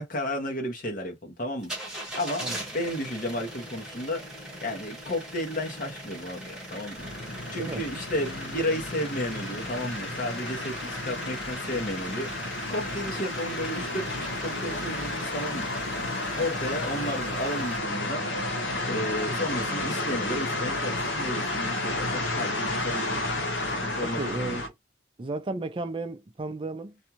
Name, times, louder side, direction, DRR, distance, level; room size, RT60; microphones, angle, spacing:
voice 1, 0.0-1.7 2.1-2.5 2.7-4.3 4.6-7.0 7.5-12.3 12.7-15.7 16.4-18.2 18.9-23.2 23.7-24.6, left 1 dB, 45° left, 1.0 m, -33 dB
sound 1, 1.6-17.8, right 1 dB, 5° right, 1.0 m, -40 dB
sound 2, 7.0-24.7, left 2 dB, 85° left, 0.9 m, -32 dB
voice 2, 24.0-24.7 25.2-27.0, right 2 dB, 30° right, 0.4 m, -33 dB
2.6 x 2.3 x 2.9 m
head